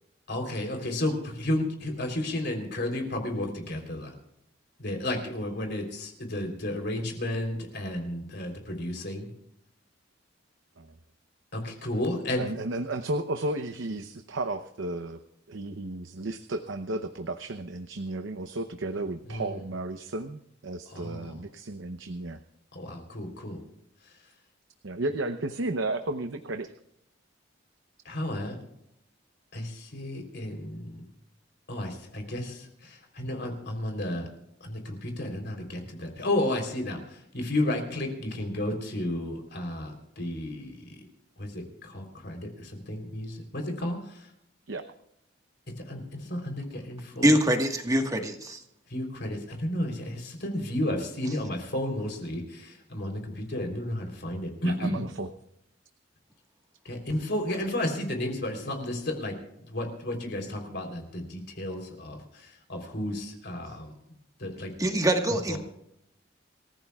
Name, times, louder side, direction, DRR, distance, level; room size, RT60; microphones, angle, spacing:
voice 1, 0.3-4.1 4.8-9.3 11.5-12.5 19.3-19.5 20.9-21.3 22.7-23.6 28.1-28.6 29.5-31.0 31.7-34.3 34.6-37.0 37.3-41.0 41.4-44.0 45.9-47.4 48.9-55.0 56.9-59.3 59.7-62.2 62.7-63.9 64.4-64.7 65.5-65.6, left 1 dB, 60° left, 3 dB, 3.6 m, -32 dB
voice 2, 12.4-15.2 15.5-22.4 24.8-26.7 44.7-44.9 54.6-55.3 63.6-63.8, right 2 dB, 85° right, 8 dB, 0.8 m, -33 dB
voice 3, 47.2-48.6 64.8-65.6, right 1 dB, 20° right, 4 dB, 1.5 m, -24 dB
27.0 x 15.5 x 2.4 m, 0.80 s
head